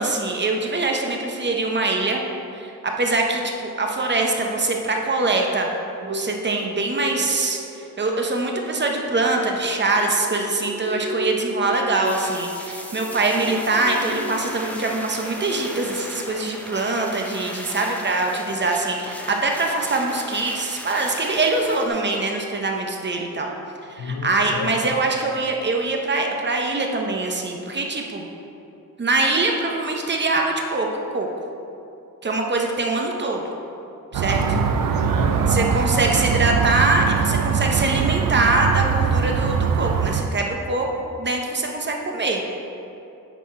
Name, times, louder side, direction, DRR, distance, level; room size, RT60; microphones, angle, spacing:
voice 1, 0.0-2.2 2.5-5.7 6.0-23.5 23.9-28.3 29.0-31.3 32.2-33.4 34.1-34.4 35.5-40.9 41.2-42.4, right 2 dB, 35° right, 1 dB, 0.7 m, -23 dB
sound 1, 5.9-15.0 15.3-15.6 15.9-16.0, equal, 55° right, 1.1 m, -35 dB
sound 2, 12.0-21.9, left 1 dB, 5° left, 0.6 m, -37 dB
voice 2, 24.0-24.7 34.1-35.8, left 5 dB, 85° left, 5 dB, 0.7 m, -32 dB
sound 3, 34.1-40.2, right 6 dB, 75° right, 0.5 m, -22 dB
9.0 x 4.1 x 4.3 m, 2.7 s
wide cardioid pair, 145°, 33 cm